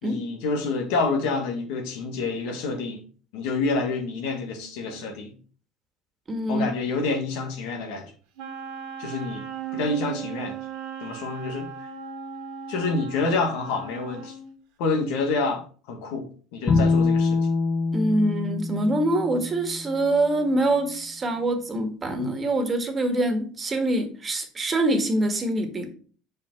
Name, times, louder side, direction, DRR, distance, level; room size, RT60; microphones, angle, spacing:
voice 1, 0.0-3.0 3.3-5.3 6.5-8.1 9.0-9.4 9.7-10.5 11.0-11.7 12.7-14.3 14.8-17.4, left 3 dB, 70° left, 1.6 m, -28 dB
voice 2, 6.3-6.7 17.9-25.9, right 1 dB, 30° right, 1.6 m, -24 dB
Wind instrument woodwind instrument, 8.4-14.5, right 7 dB, 70° right, 1.7 m, -37 dB
Bowed string instrument, 16.7-19.9, left 4 dB, 30° left, 2.4 m, -24 dB
5.4 x 5.1 x 4.6 m
hypercardioid pair, 80°, 0 cm